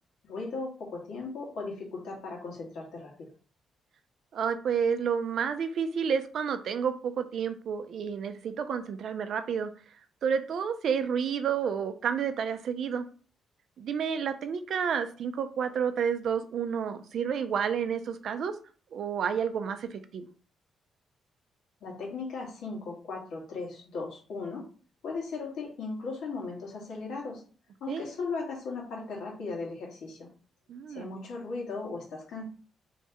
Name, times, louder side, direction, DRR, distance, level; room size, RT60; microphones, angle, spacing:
voice 1, 0.2-3.3 21.8-24.7 25.0-27.4 27.8-30.3 30.9-32.4, left 4 dB, 75° left, -2 dB, 1.6 m, -37 dB
voice 2, 4.3-10.0 10.2-13.1 13.8-18.6 18.9-20.3 27.9-28.0 30.7-31.1, right 7 dB, 55° right, 9 dB, 0.4 m, -30 dB
3.1 x 2.9 x 3.4 m, 0.39 s
cardioid pair, 170°, 0 cm